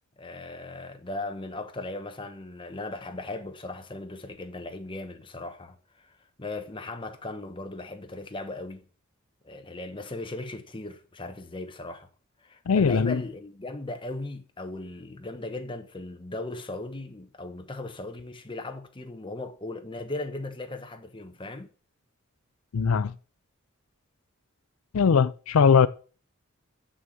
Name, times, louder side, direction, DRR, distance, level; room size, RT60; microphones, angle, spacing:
voice 1, 0.2-8.9 9.4-12.1 12.4-21.7, left 2 dB, 25° left, 1.1 m, -38 dB
voice 2, 12.7-13.2 22.7-23.1 24.9-25.9, left 6 dB, 85° left, 0.4 m, -20 dB
6.9 x 6.3 x 7.7 m
head